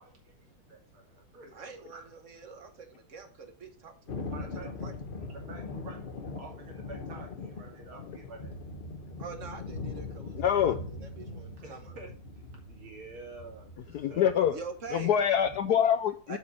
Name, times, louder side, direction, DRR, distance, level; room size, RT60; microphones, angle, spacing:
voice 1, 0.0-1.5 1.9-2.0 4.3-4.7 5.3-8.6 11.6-12.1 12.7-14.6, right 3 dB, 70° right, 0 dB, 3.5 m, -49 dB
voice 2, 1.5-4.0 4.4-4.9 9.2-11.9 14.5-15.1 16.3-16.4, right 4 dB, 40° right, 7 dB, 1.5 m, -45 dB
Thunder, 4.1-15.6, left 3 dB, 40° left, 0.7 m, -41 dB
voice 3, 10.4-10.8 13.9-14.5 15.0-16.4, left 9 dB, 85° left, 10 dB, 0.8 m, -25 dB
7.5 x 7.2 x 4.2 m, 0.42 s
omnidirectional pair, 2.3 m